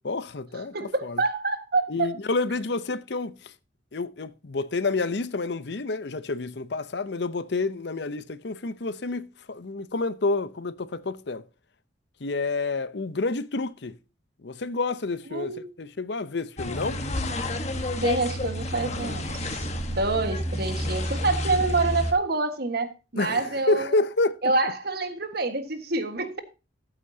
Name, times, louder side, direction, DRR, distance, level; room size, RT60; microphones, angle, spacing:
voice 1, 0.0-1.2 1.9-3.5 3.9-11.4 12.2-14.0 14.4-17.0 23.2-24.5, left 3 dB, 60° left, 0.7 m, -29 dB
voice 2, 0.7-2.1 15.3-15.8 18.0-23.9 24.4-26.4, right 3 dB, 55° right, 1.6 m, -27 dB
sound 1, 16.6-22.1, left 1 dB, 35° left, 1.3 m, -30 dB
14.0 x 8.1 x 2.8 m
head